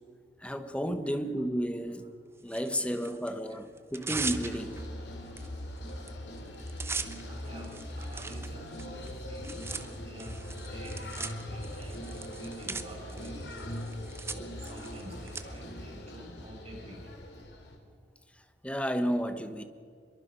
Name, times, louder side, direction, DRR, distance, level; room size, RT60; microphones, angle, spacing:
voice 1, 0.4-2.1 2.4-4.8 18.6-19.6, equal, 5° left, 1.2 m, -32 dB
Tearing, 2.5-3.3 3.8-4.9 5.4-5.5 5.8-6.1 6.4-15.4, right 4 dB, 15° right, 1.0 m, -40 dB
sound 1, 4.1-17.8, equal, 70° left, 3.2 m, -41 dB
voice 2, 7.3-13.8 14.3-17.4, equal, 35° right, 7.9 m, -48 dB
24.5 x 22.5 x 5.5 m
head